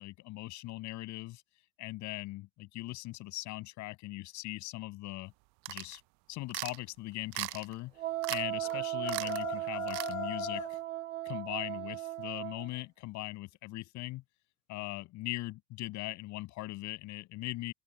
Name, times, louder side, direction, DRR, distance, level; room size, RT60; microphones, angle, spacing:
voice 1, 0.0-1.4 1.8-5.3 5.7-6.0 6.3-7.9 8.3-10.8 11.2-14.2 14.7-17.7, left 19 dB, 45° left, 7.3 m, -40 dB
sound 1, 5.7-6.0 6.5-6.8 7.3-7.7 8.2-8.4 8.7-8.8 9.1-9.4 9.9-10.1, right 30 dB, 45° right, 0.9 m, -38 dB
Wind instrument woodwind instrument, 8.0-12.7, right 15 dB, 70° right, 1.7 m, -37 dB
sound 2, 8.6-10.8, left 11 dB, 80° left, 1.2 m, -40 dB
open air
figure-of-eight pair, 85°, 39 cm